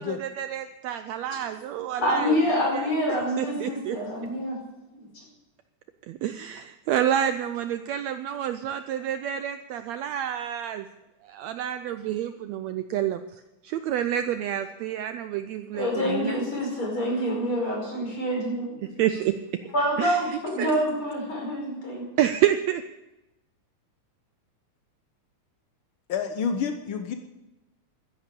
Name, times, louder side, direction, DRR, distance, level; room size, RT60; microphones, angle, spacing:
voice 1, 0.0-2.4 2.7-2.9 3.4-4.0 6.1-10.9 11.2-16.4 19.0-19.4 20.0-20.7 22.2-22.8, right 11 dB, 80° right, 10 dB, 1.6 m, -28 dB
voice 2, 2.0-4.6 5.1-5.2 15.7-18.8 19.7-22.1, equal, 40° left, -1 dB, 6.1 m, -27 dB
voice 3, 26.1-27.1, left 6 dB, 75° left, 7 dB, 1.1 m, -28 dB
12.5 x 10.5 x 8.4 m, 1.0 s
omnidirectional pair, 3.6 m